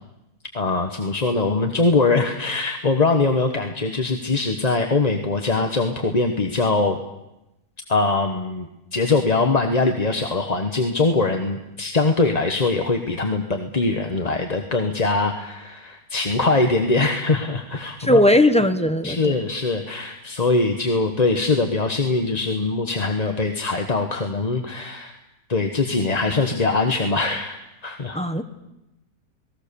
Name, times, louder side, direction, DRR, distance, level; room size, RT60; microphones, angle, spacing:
voice 1, 0.5-7.0 7.9-18.2 19.0-25.2 25.5-27.6 27.8-28.2, left 3 dB, 25° left, 5 dB, 1.3 m, -22 dB
voice 2, 18.0-19.4 28.1-28.4, left 1 dB, 5° left, 7 dB, 1.0 m, -18 dB
28.0 x 19.5 x 7.0 m, 0.93 s
omnidirectional pair, 1.7 m